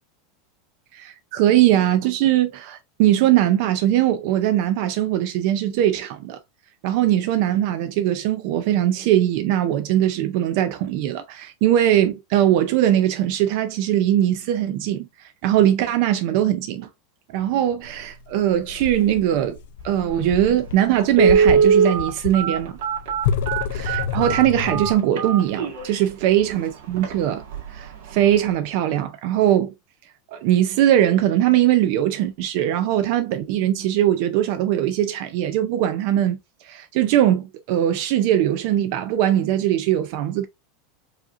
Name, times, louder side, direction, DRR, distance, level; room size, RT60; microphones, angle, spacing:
voice 1, 0.9-6.4 6.8-16.9 17.3-19.6 19.8-22.8 23.7-27.4 27.7-29.7 30.3-40.5, right 12 dB, 55° right, 0.4 m, -20 dB
sound 1, 17.8-24.9, left 7 dB, 75° left, 0.5 m, -29 dB
Telephone, 20.4-20.5 21.1-26.0 26.5-26.6 27.0-27.1 27.5-27.8 28.1-28.2, right 6 dB, 75° right, 1.8 m, -20 dB
4.8 x 2.8 x 2.5 m
supercardioid pair, 155°, 0 cm